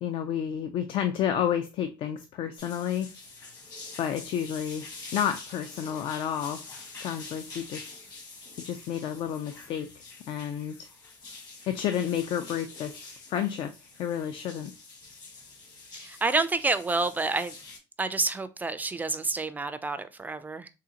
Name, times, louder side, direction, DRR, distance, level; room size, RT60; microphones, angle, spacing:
voice 1, 0.0-3.1 4.0-4.9 5.1-6.6 7.0-7.9 8.6-9.9 10.3-10.9 11.7-12.9 13.3-13.7 14.0-14.7, left 9 dB, 55° left, 0.4 m, -30 dB
sound 1, 2.6-17.8, left 3 dB, 40° left, 1.3 m, -46 dB
voice 2, 16.0-17.6 18.0-20.7, right 3 dB, 15° right, 0.3 m, -28 dB
3.8 x 2.4 x 2.8 m
supercardioid pair, 100°, 10 cm